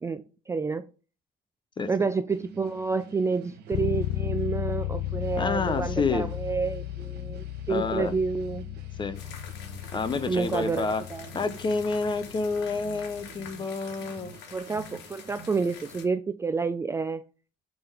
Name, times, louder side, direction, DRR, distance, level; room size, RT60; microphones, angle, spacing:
voice 1, 0.0-0.8 1.9-8.7 9.9-10.0 10.3-11.3 14.5-17.2, right 4 dB, 15° right, 11 dB, 0.3 m, -29 dB
sound 1, 2.3-16.0, right 8 dB, 75° right, 1.1 m, -49 dB
sound 2, 3.7-13.4, left 14 dB, 65° left, 0.4 m, -35 dB
voice 2, 5.4-6.3 7.7-8.1 9.0-9.2 9.9-11.0 11.3-14.4, left 4 dB, 30° left, 12 dB, 0.7 m, -28 dB
sound 3, 9.2-16.1, left 7 dB, 90° left, 1.3 m, -47 dB
7.8 x 3.6 x 3.4 m, 0.36 s
cardioid pair, 110°, 17 cm